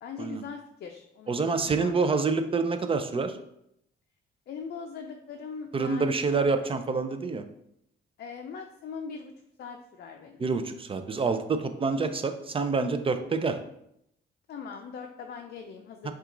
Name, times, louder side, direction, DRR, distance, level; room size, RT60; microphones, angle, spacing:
voice 1, 0.0-2.2 4.5-6.8 8.2-9.3 9.6-10.4 14.5-16.1, left 6 dB, 55° left, 4 dB, 0.5 m, -41 dB
voice 2, 1.3-3.3 5.7-7.4 10.4-13.6 16.0-16.1, right 4 dB, 25° right, 8 dB, 0.5 m, -27 dB
5.7 x 2.5 x 3.8 m, 0.77 s
cardioid pair, 90°, 20 cm